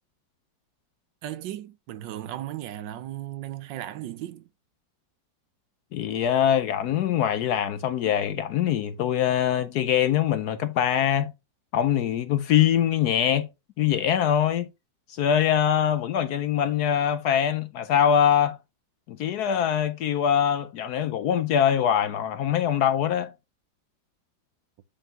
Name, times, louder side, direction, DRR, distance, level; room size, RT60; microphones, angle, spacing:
voice 1, 1.2-4.5, right 13 dB, 75° right, 1.3 m, -36 dB
voice 2, 5.9-11.3 11.7-13.5 13.8-14.7 15.1-18.6 19.1-23.3, left 9 dB, 70° left, 1.0 m, -23 dB
8.3 x 5.5 x 2.8 m
omnidirectional pair, 2.1 m